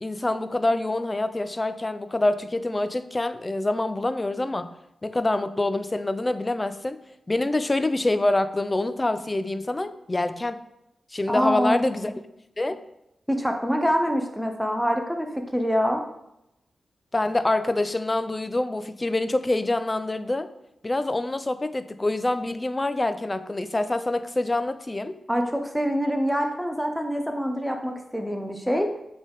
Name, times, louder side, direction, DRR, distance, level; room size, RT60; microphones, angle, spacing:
voice 1, 0.0-4.7 5.0-7.0 7.3-10.6 11.1-12.1 12.6-12.8 17.1-20.5 20.8-25.2, left 2 dB, 25° left, 11 dB, 0.4 m, -26 dB
voice 2, 11.3-12.1 13.3-16.0 25.3-28.9, equal, ahead, 4 dB, 0.8 m, -25 dB
7.2 x 3.9 x 3.5 m, 0.84 s
cardioid pair, 75°, 0 cm